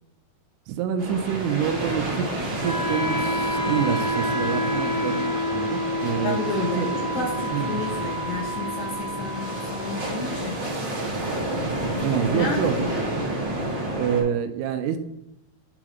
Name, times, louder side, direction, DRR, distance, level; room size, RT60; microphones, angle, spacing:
voice 1, 0.7-7.7 12.0-12.8 13.9-15.0, right 8 dB, 85° right, 8 dB, 2.6 m, -27 dB
sound 1, 1.0-14.2, right 1 dB, 50° right, 1.5 m, -30 dB
Wind instrument woodwind instrument, 2.6-12.6, left 1 dB, 65° right, 1.1 m, -30 dB
voice 2, 6.2-10.6 12.0-13.0, left 4 dB, 75° left, 0 dB, 2.3 m, -31 dB
9.7 x 3.9 x 3.0 m, 0.84 s
omnidirectional pair, 4.7 m